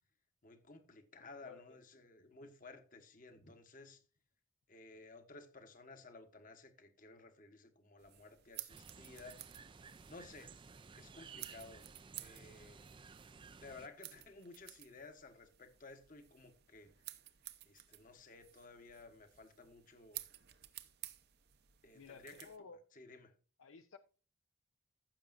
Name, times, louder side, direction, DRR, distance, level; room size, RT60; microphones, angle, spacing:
voice 1, 0.4-4.0 4.7-9.4 10.1-10.5 10.9-12.8 13.6-16.9 17.6-20.2 21.8-22.5 22.9-23.3, left 3 dB, 40° left, 1.2 m, -56 dB
voice 2, 1.2-1.8 21.9-22.8 23.6-24.0, left 4 dB, 70° left, 0.6 m, -55 dB
sound 1, 8.0-22.6, right 14 dB, 50° right, 0.7 m, -54 dB
sound 2, 8.7-13.9, right 5 dB, 25° right, 0.4 m, -56 dB
15.0 x 6.9 x 2.5 m
head